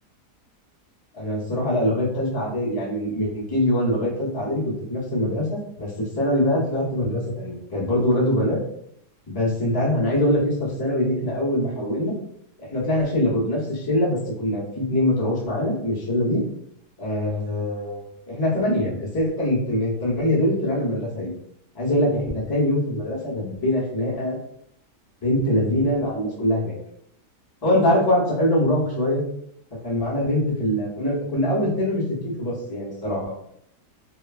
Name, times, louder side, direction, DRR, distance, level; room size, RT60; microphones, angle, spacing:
voice 1, 1.1-4.6 4.9-8.6 9.3-12.1 12.6-16.4 17.0-21.3 21.7-24.4 25.2-26.7 27.6-29.2 29.8-33.3, left 1 dB, 30° left, -6 dB, 0.4 m, -23 dB
2.9 x 2.2 x 2.3 m, 0.71 s
omnidirectional pair, 1.8 m